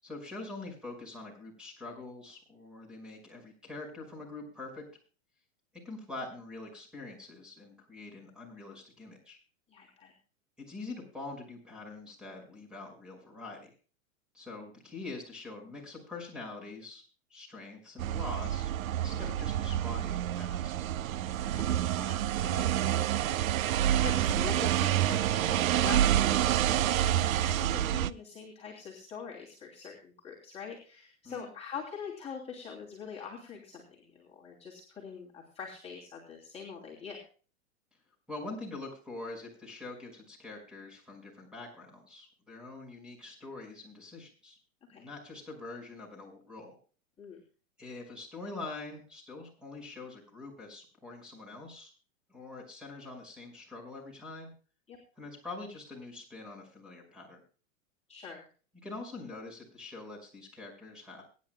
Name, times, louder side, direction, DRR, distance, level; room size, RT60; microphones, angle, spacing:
voice 1, 0.0-4.8 5.8-9.4 10.7-13.7 14.3-17.0 17.3-20.7 31.2-31.5 38.3-44.6 44.9-46.8 47.8-51.9 52.3-54.5 55.2-57.4 58.8-61.2, left 3 dB, ahead, 3 dB, 5.6 m, -44 dB
voice 2, 9.7-10.1 21.5-23.4 24.0-37.2 44.9-45.1 47.2-47.4 54.9-55.0 58.1-58.4, left 6 dB, 15° left, -4 dB, 3.1 m, -44 dB
sound 1, 18.0-28.1, right 12 dB, 75° right, 0.7 m, -28 dB
23.5 x 10.5 x 2.3 m, 0.38 s
hypercardioid pair, 125°, 42 cm